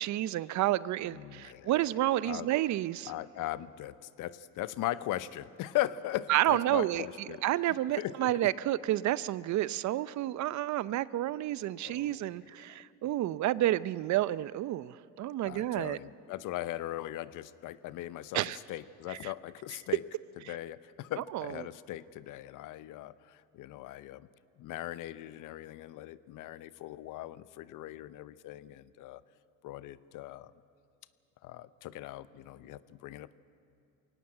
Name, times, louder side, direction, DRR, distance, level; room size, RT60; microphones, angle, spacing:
voice 1, 0.0-3.1 6.3-7.1 7.4-16.0 18.3-18.6 19.1-19.3 21.3-21.5, right 14 dB, 55° right, 18 dB, 0.6 m, -30 dB
voice 2, 1.1-1.7 2.2-2.5 3.1-7.4 7.7-8.3 11.8-12.2 12.6-12.8 15.5-18.4 18.7-20.0 20.5-24.3 24.6-29.2 29.6-30.5 31.4-33.4, left 14 dB, 65° left, 16 dB, 0.8 m, -39 dB
21.5 x 17.5 x 8.8 m, 2.7 s
supercardioid pair, 95°, 34 cm